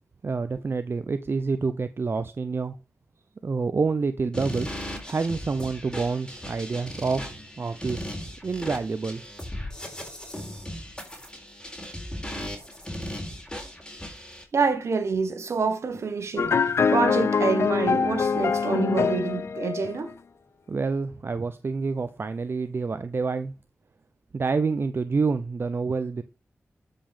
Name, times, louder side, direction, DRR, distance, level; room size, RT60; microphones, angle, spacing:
voice 1, 0.2-2.8 3.4-9.2 20.7-23.5 24.3-26.2, right 4 dB, 50° right, 0.6 m, -28 dB
sound 1, 4.3-14.4, equal, 15° left, 4.0 m, -37 dB
voice 2, 14.5-20.1, right 5 dB, 70° right, 1.5 m, -27 dB
sound 2, 16.4-20.1, left 5 dB, 65° left, 0.4 m, -24 dB
12.5 x 5.4 x 3.6 m
cardioid pair, 50°, 5 cm